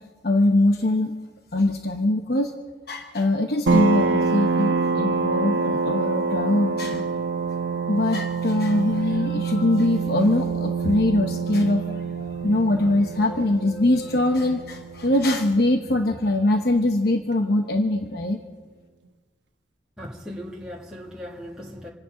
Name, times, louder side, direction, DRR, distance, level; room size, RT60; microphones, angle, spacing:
voice 1, 0.2-1.1 1.5-2.5 2.9-7.1 7.9-18.4, left 1 dB, 60° left, 4 dB, 0.9 m, -22 dB
sound 1, 3.7-16.9, right 4 dB, 80° right, 1.0 m, -26 dB
voice 2, 20.0-21.9, equal, 5° right, -6 dB, 1.8 m, -38 dB
27.5 x 9.9 x 5.1 m, 1.4 s
head